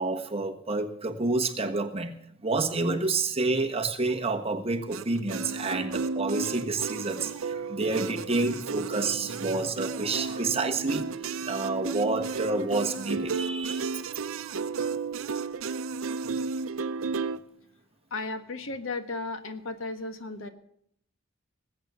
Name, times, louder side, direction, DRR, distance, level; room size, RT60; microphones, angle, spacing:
voice 1, 0.0-2.1 2.4-11.1 11.5-13.9 14.4-14.5 16.2-16.3, right 3 dB, 30° right, 5 dB, 1.2 m, -29 dB
sound 1, 4.9-17.4, right 4 dB, 85° right, 0.6 m, -33 dB
voice 2, 18.1-20.5, left 3 dB, 75° left, 8 dB, 1.5 m, -35 dB
19.5 x 8.1 x 6.8 m, 0.70 s
head